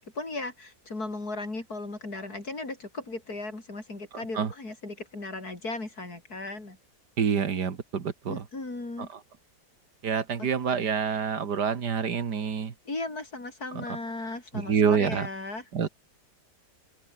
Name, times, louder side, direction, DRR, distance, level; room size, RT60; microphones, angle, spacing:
voice 1, 0.0-6.8 8.3-9.1 10.4-10.9 12.9-15.7, left 2 dB, 65° left, 5.9 m, -37 dB
voice 2, 7.2-8.4 10.0-12.7 13.8-13.9 14.5-15.3 15.7-15.9, right 6 dB, 85° right, 2.4 m, -27 dB
open air
omnidirectional pair, 1.8 m